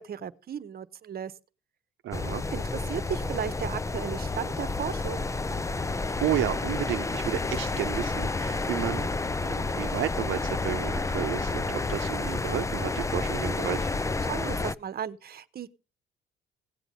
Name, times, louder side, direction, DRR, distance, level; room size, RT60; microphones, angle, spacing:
voice 1, 0.0-1.3 2.5-5.2 14.2-15.7, right 9 dB, 50° right, 15 dB, 1.0 m, -35 dB
voice 2, 2.0-2.4 6.2-13.9, right 12 dB, 75° right, 8 dB, 0.8 m, -32 dB
sound 1, 2.1-14.7, left 3 dB, 15° left, 0.6 m, -30 dB
17.0 x 8.1 x 5.1 m, 0.34 s
cardioid pair, 90°, 20 cm